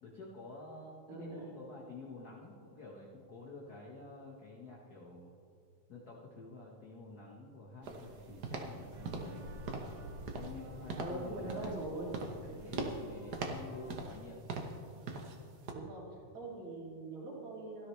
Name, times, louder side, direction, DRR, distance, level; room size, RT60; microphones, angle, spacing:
voice 1, 0.0-5.3 5.9-9.5 10.3-11.8 12.2-14.5, left 3 dB, 50° left, -4 dB, 1.2 m, -50 dB
voice 2, 1.1-1.6 11.0-12.1 15.7-17.9, right 2 dB, 30° right, -3 dB, 2.6 m, -43 dB
sound 1, 7.8-14.0, right 1 dB, 55° right, 1.7 m, -51 dB
sound 2, 7.8-8.1 8.4-8.7 9.0-9.4 9.7-10.0 10.3-10.6 10.9-11.2 11.5-11.9 12.1-12.4 12.7-13.0 13.3-14.2 14.5-14.8 15.1-15.4 15.7-15.8, right 3 dB, 70° right, 0.9 m, -40 dB
17.5 x 13.0 x 3.2 m, 2.4 s
omnidirectional pair, 3.4 m